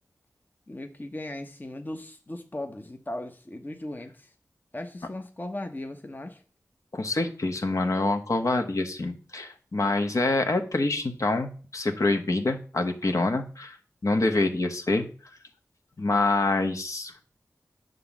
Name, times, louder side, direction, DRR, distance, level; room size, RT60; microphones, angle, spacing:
voice 1, 0.7-4.3 4.7-6.4, left 1 dB, 30° left, 5 dB, 1.0 m, -37 dB
voice 2, 6.9-13.7 14.0-15.1 16.0-17.1, left 2 dB, 60° left, 5 dB, 1.2 m, -26 dB
9.5 x 3.9 x 7.2 m, 0.39 s
wide cardioid pair, 60°, 6 cm